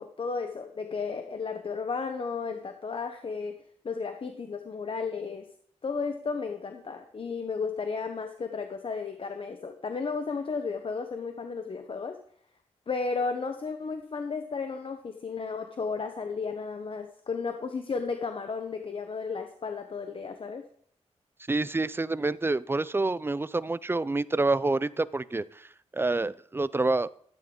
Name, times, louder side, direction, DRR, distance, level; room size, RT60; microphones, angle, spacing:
voice 1, 0.0-5.5 5.8-12.2 12.9-20.6, left 4 dB, 50° left, 6 dB, 1.0 m, -33 dB
voice 2, 21.5-25.7 25.9-27.1, right 2 dB, 20° right, 17 dB, 0.4 m, -27 dB
13.0 x 8.8 x 3.9 m, 0.62 s
cardioid pair, 75°, 12 cm